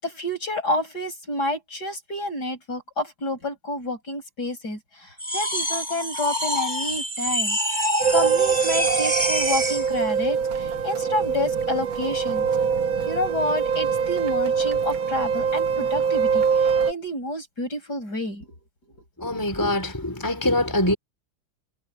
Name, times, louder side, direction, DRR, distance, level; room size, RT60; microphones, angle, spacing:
voice 1, 0.0-7.6 8.1-12.5 13.1-18.5 18.9-19.0, left 1 dB, 55° left, 7.2 m, -29 dB
sound 1, 5.2-9.9, right 1 dB, 20° right, 4.5 m, -25 dB
sound 2, 8.0-16.9, right 6 dB, 75° right, 2.1 m, -23 dB
voice 2, 19.2-21.0, left 1 dB, 10° left, 5.0 m, -24 dB
omnidirectional pair, 2.1 m